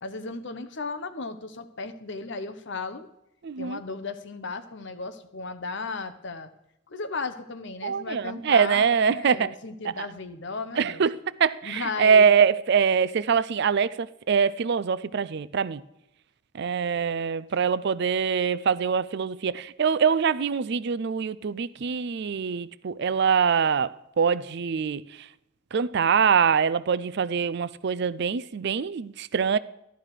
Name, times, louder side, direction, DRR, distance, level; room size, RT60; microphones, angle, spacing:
voice 1, 0.0-3.1 3.6-6.5 6.9-11.0 11.6-12.3, left 3 dB, 65° left, 1.0 m, -35 dB
voice 2, 3.4-3.8 7.8-9.5 10.0-10.1 10.8-11.1 11.4-15.8 16.5-25.0 25.7-29.6, right 6 dB, 60° right, 0.5 m, -24 dB
13.5 x 11.5 x 4.9 m
head